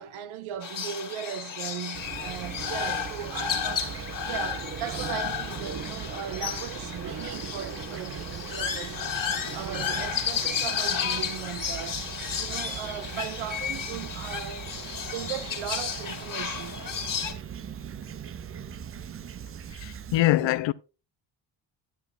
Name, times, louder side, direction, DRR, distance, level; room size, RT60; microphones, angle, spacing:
voice 1, 0.0-9.1 9.5-12.0 12.4-14.7 15.1-16.9 20.3-20.5, right 9 dB, 85° right, 0.9 m, -38 dB
sound 1, 0.6-17.3, left 7 dB, 40° left, 2.2 m, -33 dB
Fowl / Chirp tweet, 1.9-20.2, right 8 dB, 30° right, 0.4 m, -39 dB
voice 2, 19.8-20.7, left 16 dB, 65° left, 0.6 m, -23 dB
11.5 x 9.2 x 2.4 m
cardioid pair, 115°, 48 cm